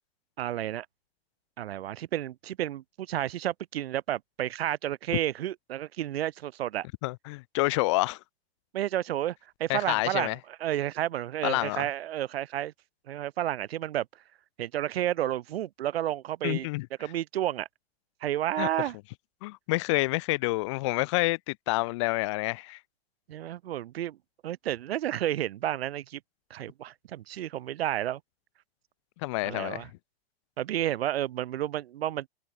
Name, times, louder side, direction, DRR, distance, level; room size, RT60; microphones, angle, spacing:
voice 1, 0.4-0.9 1.6-6.9 8.7-12.7 13.1-14.1 14.6-16.7 17.0-17.7 18.2-19.0 23.3-24.2 24.4-26.2 26.5-28.2 29.4-29.9 30.6-32.3, right 12 dB, 80° right, 0.9 m, -31 dB
voice 2, 7.0-8.2 9.7-10.4 11.4-11.9 16.4-16.9 18.6-18.7 19.4-22.8 29.2-29.9, left 22 dB, 30° left, 0.7 m, -28 dB
supercardioid pair, 170°, 30 cm